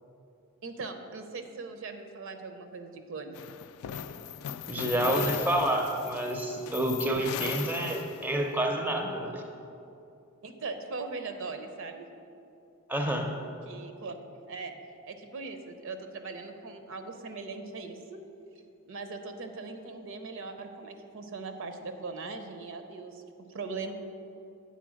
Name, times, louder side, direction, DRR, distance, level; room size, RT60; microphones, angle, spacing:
voice 1, 0.6-3.4 4.4-4.5 5.1-5.8 10.4-12.1 13.7-14.2 14.5-14.7 15.1-18.2 18.9-23.2 23.5-23.9, right 4 dB, 60° right, 7 dB, 0.6 m, -40 dB
sound 1, 3.3-8.5, left 9 dB, 70° left, 0.3 m, -38 dB
voice 2, 4.7-9.4 12.9-13.3, right 1 dB, 10° right, 3 dB, 0.5 m, -29 dB
8.2 x 4.1 x 6.2 m, 2.6 s
head